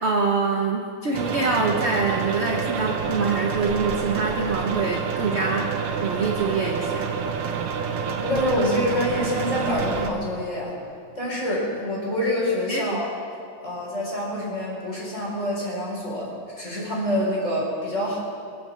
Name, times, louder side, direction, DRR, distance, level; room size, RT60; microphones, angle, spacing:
voice 1, 0.0-5.7 6.0-7.1 12.7-13.0, right 4 dB, 40° right, 1 dB, 1.1 m, -25 dB
sound 1, 1.1-10.1, right 6 dB, 90° right, 2.0 m, -28 dB
voice 2, 8.2-10.8 11.2-13.1 13.6-18.2, left 1 dB, 35° left, -4 dB, 4.5 m, -26 dB
22.0 x 7.9 x 7.3 m, 2.4 s
omnidirectional pair, 2.3 m